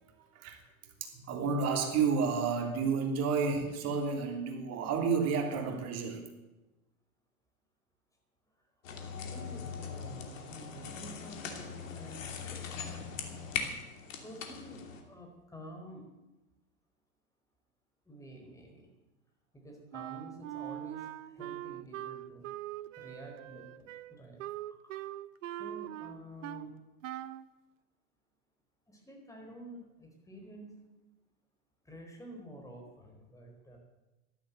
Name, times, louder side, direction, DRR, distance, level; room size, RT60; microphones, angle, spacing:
voice 1, 1.0-6.2, right 5 dB, 35° right, 3 dB, 3.2 m, -31 dB
sound 1, 8.8-15.0, left 6 dB, 65° left, 2.8 m, -40 dB
voice 2, 9.1-12.7 14.2-16.1 18.1-18.9 19.5-22.5 23.0-24.4 24.7-25.0 25.6-26.8 28.9-30.9 31.8-33.8, right 1 dB, 5° left, 1 dB, 4.5 m, -50 dB
Wind instrument woodwind instrument, 19.9-26.7 27.0-27.5, right 14 dB, 60° right, 0.8 m, -42 dB
13.0 x 12.0 x 7.8 m, 1.0 s
hypercardioid pair, 100°, 42 cm